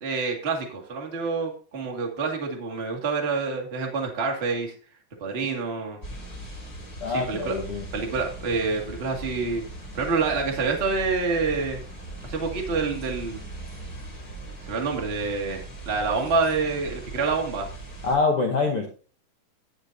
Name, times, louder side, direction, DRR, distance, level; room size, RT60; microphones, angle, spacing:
voice 1, 0.0-4.7 5.2-6.0 7.1-7.5 7.9-9.6 9.9-11.8 12.2-13.4 14.6-17.7, right 4 dB, 30° right, 1 dB, 1.1 m, -27 dB
sound 1, 6.0-18.2, right 2 dB, 20° left, 4.8 m, -39 dB
voice 2, 7.0-7.8 18.0-18.9, left 3 dB, 75° left, 0 dB, 1.3 m, -25 dB
18.5 x 7.3 x 2.6 m, 0.39 s
omnidirectional pair, 4.5 m